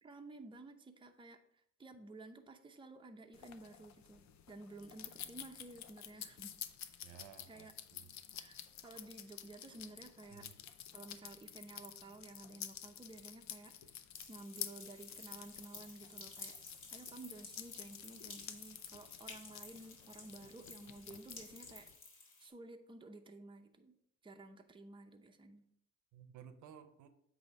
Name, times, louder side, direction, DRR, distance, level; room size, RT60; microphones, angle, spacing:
voice 1, 0.0-6.5 6.9-7.1 7.5-7.7 8.3-10.5 10.9-13.7 14.3-16.6 16.9-21.9 22.4-23.9 24.2-25.7, right 2 dB, 15° right, 5 dB, 0.7 m, -53 dB
sound 1, 3.3-21.9, left 10 dB, 65° left, 0.6 m, -51 dB
voice 2, 7.0-8.1 10.3-10.5 26.1-27.1, right 8 dB, 80° right, 10 dB, 0.7 m, -56 dB
sound 2, 14.1-22.5, left 3 dB, 45° left, 2.1 m, -54 dB
8.1 x 2.8 x 5.2 m, 0.72 s
cardioid pair, 90°, 30 cm